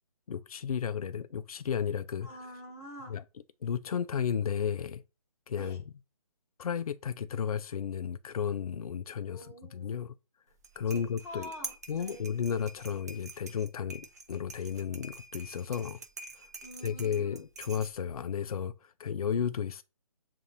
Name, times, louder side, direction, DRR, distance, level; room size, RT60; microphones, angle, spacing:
voice 1, 0.3-2.3 3.1-3.2 3.6-5.0 5.5-5.8 6.6-10.1 10.8-11.5 11.9-16.0 16.3-16.4 16.8-19.8, left 7 dB, 70° left, 0.4 m, -33 dB
voice 2, 2.2-3.1 5.6-5.8 9.3-9.9 10.9-12.3 16.6-17.4, equal, 10° left, 1.0 m, -47 dB
sound 1, 10.5-18.2, right 3 dB, 25° right, 0.4 m, -47 dB
7.1 x 2.5 x 2.7 m
hypercardioid pair, 165°, 19 cm